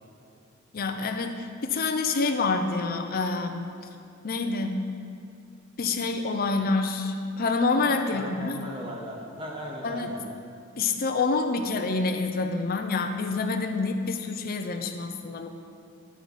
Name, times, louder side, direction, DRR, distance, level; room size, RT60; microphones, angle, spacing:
voice 1, 0.7-3.7 4.2-4.8 5.8-8.6 9.8-10.2 10.8-15.5, left 3 dB, 45° left, 5 dB, 0.5 m, -27 dB
voice 2, 8.1-10.2, equal, 25° right, -2 dB, 1.5 m, -37 dB
9.4 x 9.2 x 4.1 m, 2.4 s
head